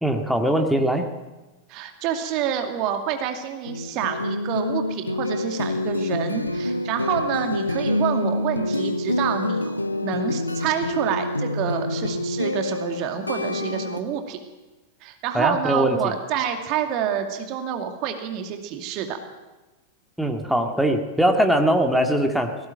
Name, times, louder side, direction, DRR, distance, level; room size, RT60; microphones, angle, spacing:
voice 1, 0.0-1.1 15.3-16.0 20.2-22.6, right 1 dB, ahead, 4 dB, 2.1 m, -21 dB
voice 2, 1.7-14.4 15.0-19.2, right 8 dB, 40° right, 6 dB, 2.4 m, -28 dB
sound 1, 3.6-14.0, left 2 dB, 85° left, 1.1 m, -27 dB
18.5 x 17.5 x 9.1 m, 1.1 s
figure-of-eight pair, 90°, 0 cm